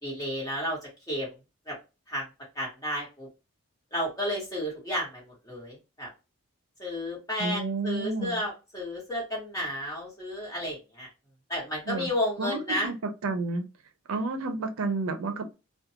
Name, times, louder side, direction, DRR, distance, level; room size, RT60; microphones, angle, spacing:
voice 1, 0.0-0.8 1.1-1.3 1.7-1.8 2.1-2.2 2.5-3.3 3.9-6.1 6.8-11.1 11.5-12.9, equal, 15° left, 1.2 m, -32 dB
voice 2, 7.4-8.4 11.9-12.1 12.4-13.6 14.1-15.5, right 3 dB, 80° right, 0.5 m, -30 dB
2.4 x 2.2 x 2.8 m
head